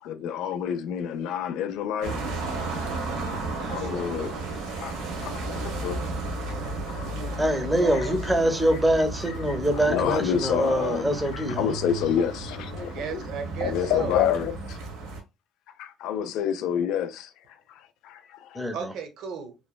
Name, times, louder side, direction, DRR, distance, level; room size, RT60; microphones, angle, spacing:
voice 1, 0.0-2.2 3.7-4.3 4.8-4.9 5.2-6.0 6.9-7.3 7.9-8.1 9.5-13.2 13.6-14.8 15.8-17.3 17.7-18.6, left 9 dB, 70° left, 0.4 m, -28 dB
sound 1, 2.0-15.2, right 2 dB, 85° right, 0.9 m, -33 dB
voice 2, 3.6-4.3 7.1-7.2 12.7-14.1 18.7-19.6, right 6 dB, 65° right, 0.7 m, -35 dB
voice 3, 7.4-11.7 18.5-18.9, right 1 dB, 5° right, 0.6 m, -24 dB
2.9 x 2.1 x 2.3 m
cardioid pair, 125°, 0 cm